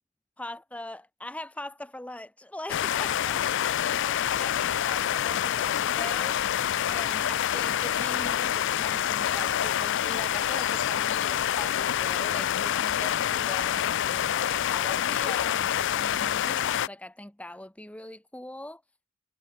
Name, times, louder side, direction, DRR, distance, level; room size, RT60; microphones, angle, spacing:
voice 1, 0.4-3.4 4.0-6.6 6.9-18.8, left 1 dB, 5° left, 0.9 m, -42 dB
sound 1, 2.7-16.9, left 10 dB, 60° left, 0.4 m, -27 dB
head